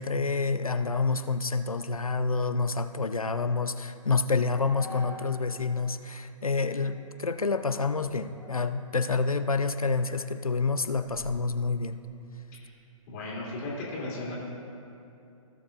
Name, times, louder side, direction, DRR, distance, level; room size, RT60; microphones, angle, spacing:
voice 1, 0.0-12.0, left 4 dB, 85° left, 10 dB, 0.5 m, -28 dB
sound 1, 1.4-5.5 5.9-6.0 6.6-7.0 7.3-9.4 9.8-12.2, equal, 5° left, 1.5 m, -49 dB
voice 2, 13.1-14.3, left 2 dB, 30° left, -7 dB, 2.2 m, -35 dB
17.0 x 7.1 x 2.4 m, 2.7 s
figure-of-eight pair, 125°, 18 cm